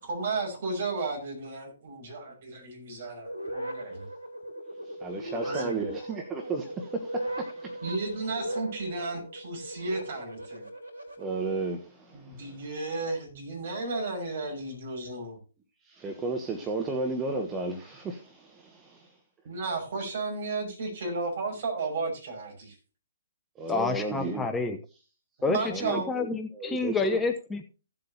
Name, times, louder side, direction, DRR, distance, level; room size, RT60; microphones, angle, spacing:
voice 1, 0.0-4.0 5.4-5.8 7.8-10.7 12.1-15.4 19.4-22.7 25.5-26.1, right 3 dB, 50° right, 6.0 m, -34 dB
sound 1, 3.3-11.2, right 1 dB, 90° right, 3.7 m, -38 dB
voice 2, 4.8-7.8 11.2-12.7 15.8-19.1 23.6-24.5 25.7-27.2, right 3 dB, 15° right, 1.3 m, -34 dB
voice 3, 23.7-24.8 25.4-27.6, left 4 dB, 10° left, 0.8 m, -29 dB
16.5 x 7.8 x 2.8 m
figure-of-eight pair, 125°, 0 cm